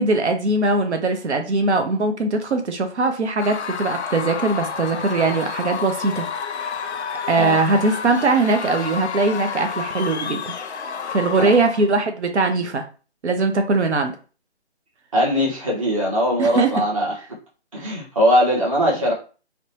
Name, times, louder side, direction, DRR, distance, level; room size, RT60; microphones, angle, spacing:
voice 1, 0.0-6.3 7.3-10.5 11.1-12.8 13.2-14.1 16.4-16.7, right 3 dB, 80° right, 6 dB, 0.6 m, -21 dB
Screaming / Cheering / Crowd, 3.4-11.9, left 6 dB, 80° left, 0.5 m, -30 dB
voice 2, 15.1-17.2 17.7-19.1, equal, 30° right, -4 dB, 0.8 m, -20 dB
2.8 x 2.1 x 2.7 m, 0.36 s
figure-of-eight pair, 155°, 33 cm